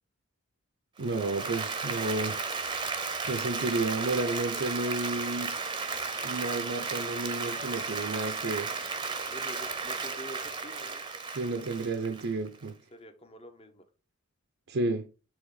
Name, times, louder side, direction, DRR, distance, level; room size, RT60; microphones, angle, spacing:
Applause, 1.0-12.7, right 4 dB, 20° right, 0.7 m, -34 dB
voice 1, 1.0-2.4 3.3-5.6 6.2-8.7 11.4-12.8 14.7-15.1, right 2 dB, 55° right, 0.6 m, -31 dB
voice 2, 9.3-11.0 12.9-13.8, equal, 30° left, 0.9 m, -46 dB
7.8 x 3.5 x 3.8 m
head